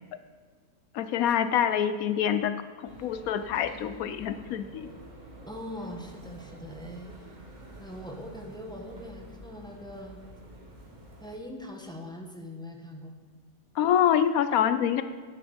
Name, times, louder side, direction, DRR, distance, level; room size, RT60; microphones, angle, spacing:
voice 1, 0.9-4.9 13.8-15.0, left 9 dB, 85° left, 11 dB, 1.1 m, -26 dB
sound 1, 2.9-11.4, right 1 dB, 30° right, 1.7 m, -48 dB
voice 2, 5.5-7.1 7.8-10.2 11.2-13.1, left 1 dB, 5° left, 2 dB, 1.3 m, -41 dB
10.5 x 9.6 x 7.1 m, 1.5 s
omnidirectional pair, 1.5 m